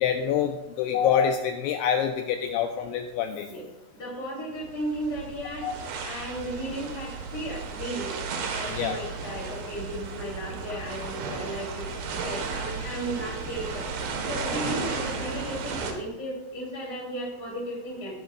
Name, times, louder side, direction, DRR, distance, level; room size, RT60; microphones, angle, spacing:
voice 1, 0.0-3.5 5.6-5.7 8.7-8.9, left 8 dB, 85° left, 5 dB, 2.6 m, -26 dB
voice 2, 3.9-8.1 8.5-13.9 14.3-18.2, right 1 dB, 25° left, -6 dB, 2.8 m, -35 dB
sound 1, 4.5-15.9, right 5 dB, 65° right, 2.6 m, -34 dB
20.0 x 11.0 x 2.4 m, 1.0 s
omnidirectional pair, 5.8 m